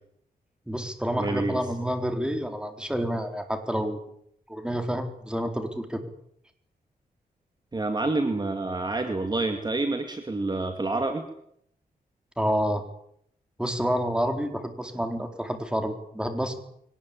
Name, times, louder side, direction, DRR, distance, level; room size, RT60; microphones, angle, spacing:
voice 1, 0.7-4.1 4.5-6.0 12.4-12.8 13.6-16.6, equal, 5° right, 6 dB, 4.2 m, -29 dB
voice 2, 1.2-1.6 7.7-11.3, right 2 dB, 25° right, 6 dB, 2.5 m, -28 dB
23.0 x 19.0 x 8.9 m, 0.71 s
wide cardioid pair, 105°, 16 cm